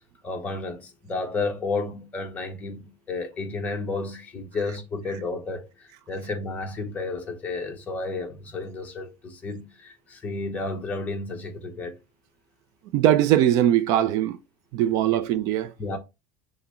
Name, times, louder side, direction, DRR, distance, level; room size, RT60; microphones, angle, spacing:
voice 1, 0.2-12.0 15.8-16.0, left 3 dB, 20° left, 0.9 m, -32 dB
voice 2, 12.9-14.4 14.7-15.7, right 11 dB, 50° right, 0.4 m, -21 dB
5.8 x 2.1 x 4.2 m
supercardioid pair, 155°, 8 cm